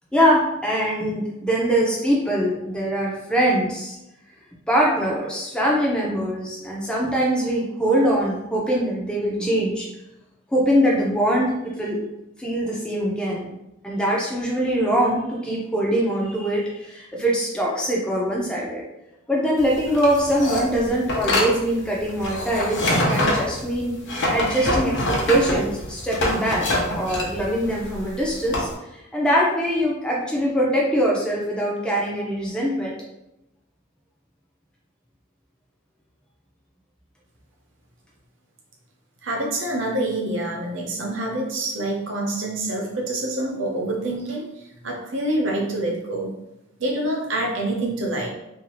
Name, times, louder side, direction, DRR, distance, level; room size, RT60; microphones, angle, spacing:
voice 1, 0.1-4.0 4.7-9.9 10.5-12.0 12.4-13.5 13.8-18.8 19.3-23.9 24.3-24.9 25.3-26.7 27.0-28.7 29.1-32.9, equal, 5° left, -4 dB, 0.4 m, -22 dB
sound 1, 19.6-28.7, left 1 dB, 60° left, 0.6 m, -25 dB
voice 2, 39.2-44.4 44.8-46.3 46.8-48.3, right 1 dB, 65° right, -1 dB, 0.7 m, -26 dB
2.6 x 2.3 x 2.9 m, 0.90 s
head